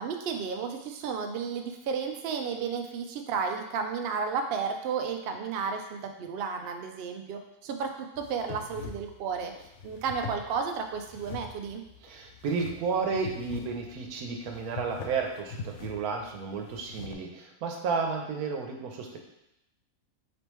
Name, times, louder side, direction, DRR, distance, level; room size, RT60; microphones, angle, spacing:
voice 1, 0.0-11.8, right 6 dB, 65° right, 4 dB, 0.6 m, -33 dB
sound 1, 8.2-17.1, left 4 dB, 65° left, 0.8 m, -43 dB
voice 2, 12.0-19.2, right 5 dB, 85° right, 2 dB, 1.2 m, -32 dB
5.0 x 3.4 x 3.0 m, 0.86 s
omnidirectional pair, 1.5 m